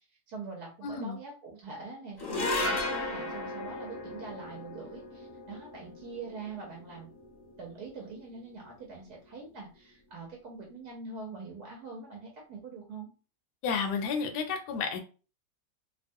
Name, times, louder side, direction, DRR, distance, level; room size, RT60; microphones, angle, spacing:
voice 1, 0.0-7.1 7.6-13.1, right 4 dB, 70° right, -2 dB, 1.2 m, -44 dB
voice 2, 0.8-1.2 13.6-15.0, left 5 dB, 75° left, 4 dB, 1.0 m, -31 dB
sound 1, 2.2-8.7, left 2 dB, 20° left, 0.7 m, -36 dB
2.9 x 2.2 x 2.6 m, 0.35 s
omnidirectional pair, 1.8 m